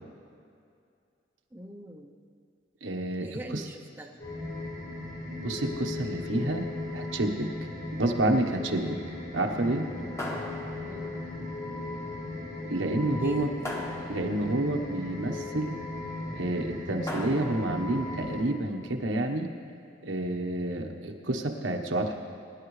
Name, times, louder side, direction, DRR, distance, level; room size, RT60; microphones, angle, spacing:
voice 1, 1.5-2.1 3.2-4.2 10.0-11.2 13.1-13.5, equal, 10° right, 2 dB, 0.6 m, -43 dB
voice 2, 2.8-3.6 5.4-6.7 6.9-7.5 8.0-9.0 9.3-9.8 12.6-13.5 14.1-15.8 16.3-19.5 20.0-22.1, right 1 dB, 85° right, 3 dB, 1.2 m, -29 dB
sound 1, 4.2-18.4, left 2 dB, 55° left, 3.9 m, -37 dB
sound 2, 10.2-11.2 13.6-14.6 17.1-17.9, left 1 dB, 15° left, 1.1 m, -38 dB
22.0 x 11.0 x 3.2 m, 2.4 s
head